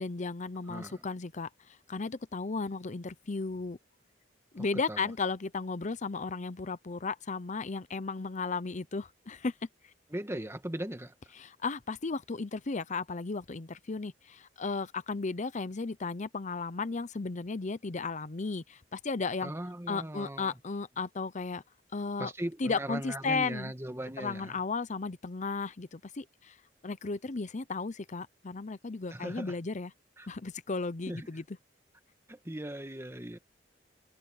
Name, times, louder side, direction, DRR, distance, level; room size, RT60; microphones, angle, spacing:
voice 1, 0.0-1.5 1.9-3.8 4.5-9.5 11.4-19.5 19.9-21.6 21.9-22.3 22.6-23.7 24.2-26.5 26.8-29.9 30.3-31.4, left 4 dB, 40° left, 0.7 m, -35 dB
voice 2, 0.7-1.0 4.6-5.1 10.1-11.1 19.4-20.5 22.2-24.6 29.1-29.6 30.2-30.3 31.1-31.3 32.3-33.4, right 1 dB, 15° right, 1.6 m, -39 dB
head